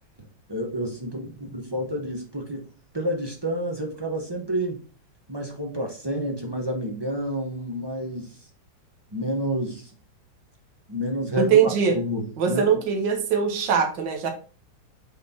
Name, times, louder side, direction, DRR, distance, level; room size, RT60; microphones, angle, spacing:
voice 1, 0.2-2.7 2.9-4.8 5.3-8.4 9.1-9.9 10.9-12.8, equal, 20° right, 1 dB, 0.7 m, -29 dB
voice 2, 11.4-11.9 12.4-14.3, right 7 dB, 65° right, 4 dB, 1.7 m, -21 dB
6.2 x 4.0 x 4.3 m, 0.37 s
omnidirectional pair, 2.3 m